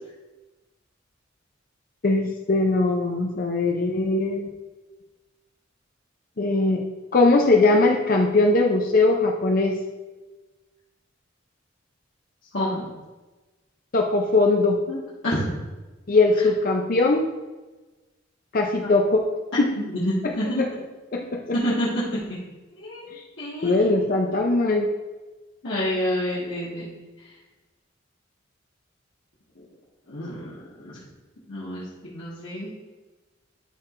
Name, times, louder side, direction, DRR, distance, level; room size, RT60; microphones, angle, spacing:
voice 1, 2.0-4.5 6.4-6.8 7.1-9.8 13.9-14.8 16.1-17.3 18.5-19.2 19.6-19.7 20.6-20.7 21.1-21.4 23.1-23.2 23.6-24.9, left 2 dB, 45° left, 2 dB, 0.6 m, -20 dB
voice 2, 12.5-12.9 14.9-15.0 15.2-15.5 18.8-18.9 19.5-20.6 21.5-22.0 22.8-23.0 23.4-23.7 25.6-26.9 30.1-31.0 31.5-32.7, equal, 70° left, -9 dB, 1.5 m, -28 dB
11.0 x 4.6 x 2.5 m, 1.2 s
head